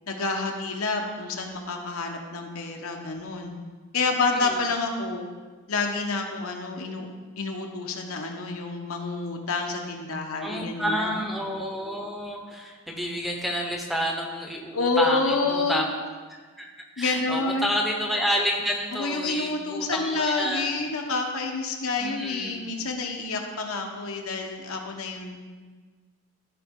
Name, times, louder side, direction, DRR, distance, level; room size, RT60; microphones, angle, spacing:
voice 1, 0.1-3.5 3.9-5.3 5.7-7.1 7.4-11.2 14.7-15.8 17.0-17.7 18.9-25.4, left 3 dB, 75° left, 2 dB, 1.1 m, -28 dB
voice 2, 10.4-15.8 16.3-16.7 17.0-20.8 22.0-22.7, equal, ahead, 0 dB, 0.8 m, -29 dB
14.0 x 5.2 x 3.7 m, 1.4 s
head